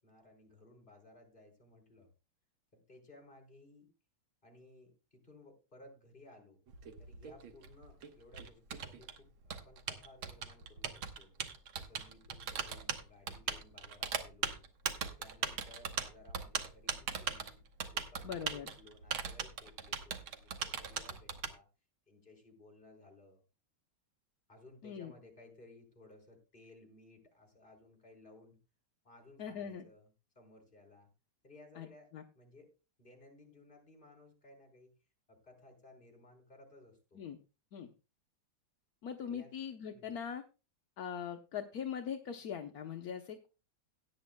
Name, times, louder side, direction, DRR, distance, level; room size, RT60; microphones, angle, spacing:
voice 1, 0.0-2.1 2.7-3.9 4.4-6.6 7.0-11.3 11.7-14.6 15.2-17.6 17.9-21.7 22.1-23.4 24.5-28.6 29.0-31.1 31.4-32.7 33.0-34.9 35.3-37.2 39.2-39.5 39.9-40.2, left 2 dB, 25° left, 2 dB, 4.3 m, -59 dB
Typing, 6.7-21.5, right 7 dB, 80° right, 2.0 m, -39 dB
voice 2, 18.2-18.7 24.8-25.1 29.4-29.9 31.8-31.9 32.1-32.2 37.2-37.4 37.7-37.9 39.0-40.4 41.0-43.5, left 8 dB, 60° left, 5 dB, 1.1 m, -41 dB
17.5 x 10.0 x 2.2 m, 0.31 s
omnidirectional pair, 2.2 m